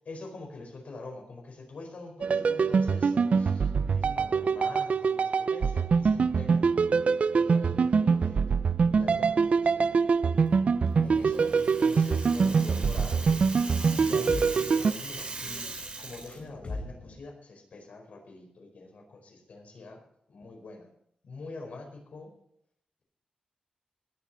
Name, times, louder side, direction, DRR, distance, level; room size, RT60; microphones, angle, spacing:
voice 1, 0.0-6.9 7.3-8.6 8.9-9.9 11.0-13.3 13.9-15.6 16.0-20.0 20.3-20.9 21.2-22.3, left 3 dB, 75° left, 2 dB, 4.7 m, -45 dB
sound 1, 2.2-14.9, right 5 dB, 65° right, 0.5 m, -24 dB
sound 2, 8.5-17.2, left 2 dB, 55° left, 7.2 m, -45 dB
Rattle (instrument), 11.1-16.4, right 3 dB, 45° right, 4.0 m, -40 dB
18.5 x 7.3 x 5.8 m, 0.72 s
wide cardioid pair, 90°, 2 cm